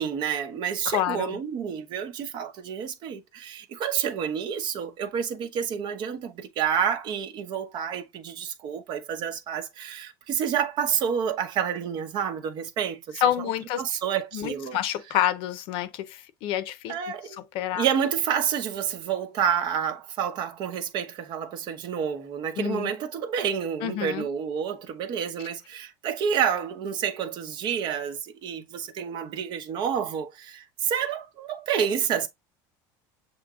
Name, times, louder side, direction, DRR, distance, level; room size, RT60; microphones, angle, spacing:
voice 1, 0.0-13.5 13.8-14.8 16.9-17.4 17.8-32.3, right 8 dB, 45° right, 0.9 m, -29 dB
voice 2, 0.9-1.3 13.2-13.8 14.3-16.9 17.5-17.8 22.6-22.9 23.8-24.3, left 11 dB, 55° left, 0.7 m, -28 dB
7.2 x 3.1 x 2.4 m
supercardioid pair, 140°, 10 cm